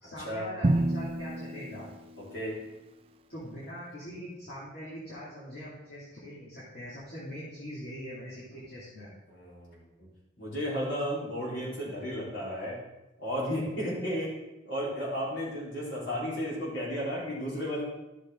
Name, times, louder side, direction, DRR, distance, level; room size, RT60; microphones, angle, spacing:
voice 1, 0.0-1.9 3.3-9.1, equal, 55° left, -10 dB, 2.5 m, -42 dB
Drum, 0.6-2.7, right 1 dB, 30° right, 0.4 m, -29 dB
voice 2, 9.3-9.8 10.4-12.8 13.2-14.3 14.6-17.8, equal, 70° left, -6 dB, 3.8 m, -33 dB
11.5 x 6.5 x 3.8 m, 0.96 s
head